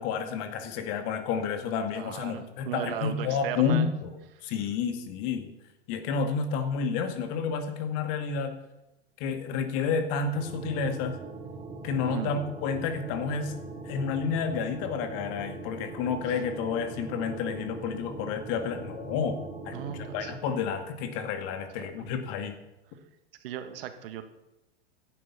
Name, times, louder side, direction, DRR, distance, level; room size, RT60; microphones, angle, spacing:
voice 1, 0.0-4.1 4.4-5.5 5.9-8.5 9.2-11.1 11.8-13.5 13.8-19.4 19.7-22.6, left 6 dB, 45° left, 8 dB, 2.3 m, -30 dB
voice 2, 1.9-3.9 12.1-12.3 19.7-20.3 21.8-21.9 23.4-24.2, right 11 dB, 55° right, 9 dB, 1.8 m, -36 dB
sound 1, 10.3-20.4, right 3 dB, 20° right, 3.7 m, -41 dB
16.0 x 11.0 x 5.7 m, 0.95 s
figure-of-eight pair, 100°, 34 cm